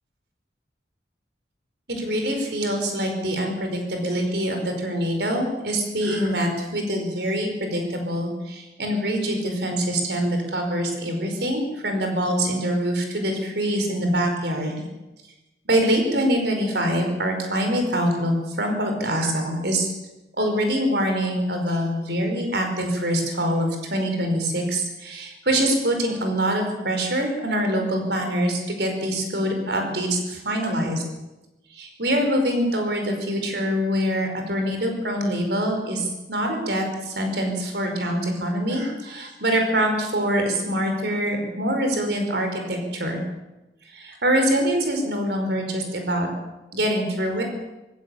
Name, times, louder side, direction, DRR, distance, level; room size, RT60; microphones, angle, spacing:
voice 1, 1.9-14.7 15.7-19.9 20.4-31.0 31.7-43.2 43.9-46.3 46.7-47.4, equal, 65° right, 4 dB, 5.1 m, -24 dB
20.0 x 16.5 x 8.5 m, 1.0 s
head